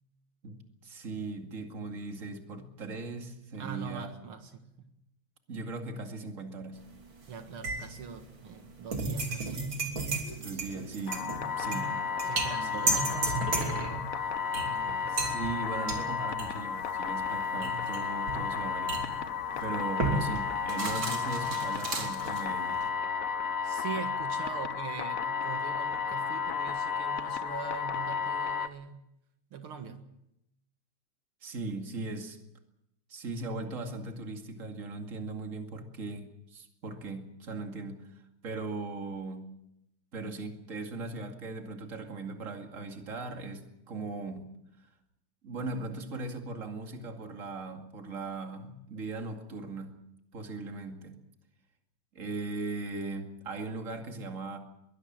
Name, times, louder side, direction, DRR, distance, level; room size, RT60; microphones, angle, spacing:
voice 1, 0.4-4.1 5.5-6.8 10.4-12.0 12.6-13.2 15.1-19.0 19.6-22.9 31.4-32.4 33.1-39.5 40.1-44.5 45.4-50.0 50.3-51.2 52.1-54.6, right 3 dB, 40° right, 4 dB, 2.6 m, -39 dB
voice 2, 3.6-4.9 7.3-9.5 12.2-14.2 14.6-15.2 23.6-29.0 29.5-30.1, right 7 dB, 85° right, 6 dB, 2.6 m, -42 dB
sound 1, 6.8-7.3 7.6-22.9, right 3 dB, 65° right, 3.8 m, -34 dB
sound 2, 11.1-28.7, left 6 dB, 55° left, 1.0 m, -33 dB
22.0 x 18.0 x 7.6 m, 0.83 s
omnidirectional pair, 2.3 m